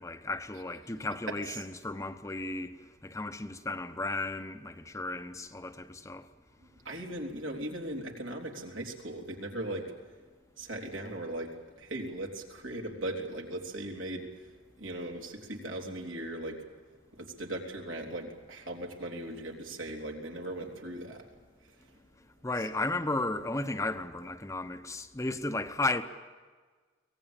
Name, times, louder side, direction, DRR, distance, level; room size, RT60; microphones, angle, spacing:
voice 1, 0.0-2.8 3.0-6.3 22.4-26.0, left 2 dB, 15° left, 0.8 m, -34 dB
voice 2, 6.6-10.2 10.6-16.6 17.1-21.3 21.7-22.0 22.6-22.7, right 1 dB, 85° right, 3.5 m, -39 dB
24.0 x 18.0 x 8.9 m
head